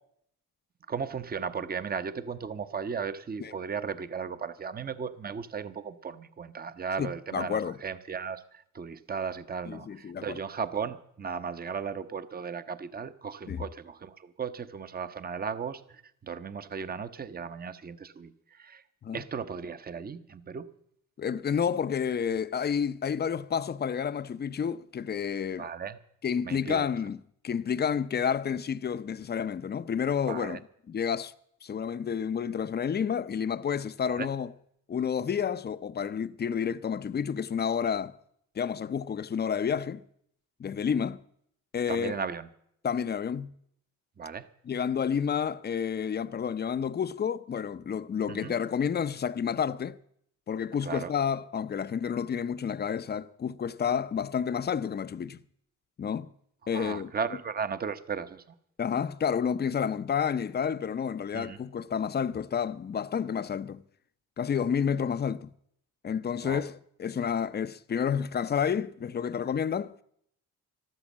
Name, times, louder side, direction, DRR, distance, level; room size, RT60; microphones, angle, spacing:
voice 1, 0.9-18.8 19.1-20.7 25.6-26.0 26.4-26.8 30.3-30.6 34.0-34.3 41.9-42.5 44.2-44.5 48.3-48.5 50.8-51.1 56.7-58.4 61.3-61.6 66.4-66.7, right 6 dB, 30° right, 0.9 m, -36 dB
voice 2, 7.0-7.8 9.7-10.4 13.5-13.6 19.0-19.2 21.2-25.7 26.2-27.2 27.4-30.6 30.9-31.3 31.6-34.5 34.9-38.1 38.6-40.0 40.6-41.2 41.7-42.2 42.8-43.5 44.7-50.0 50.5-55.4 56.0-56.3 56.7-57.1 58.8-63.8 64.4-65.5 66.0-70.0, left 7 dB, 35° left, 0.6 m, -30 dB
13.5 x 12.5 x 7.3 m
cardioid pair, 90°, 30 cm